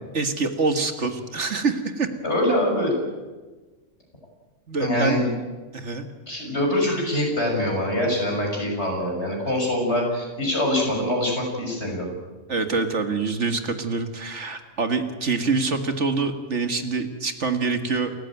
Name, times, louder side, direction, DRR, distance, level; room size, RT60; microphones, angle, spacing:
voice 1, 0.1-2.1 4.7-5.3 5.7-6.1 12.5-18.1, right 4 dB, 60° right, 7 dB, 2.0 m, -25 dB
voice 2, 2.2-2.9 4.8-5.3 6.3-12.1, left 1 dB, 55° left, 0 dB, 7.0 m, -24 dB
28.5 x 15.0 x 9.1 m, 1.3 s
omnidirectional pair, 1.4 m